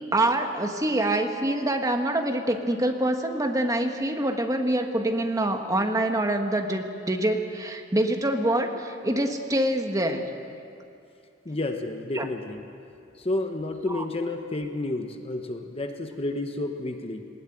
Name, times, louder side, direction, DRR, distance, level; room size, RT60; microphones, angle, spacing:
voice 1, 0.1-10.3 12.1-12.3 13.9-14.0, right 1 dB, 20° right, 5 dB, 1.4 m, -25 dB
voice 2, 11.4-12.6 13.2-17.2, left 2 dB, 30° left, 5 dB, 1.1 m, -30 dB
19.5 x 19.0 x 9.1 m, 2.5 s
head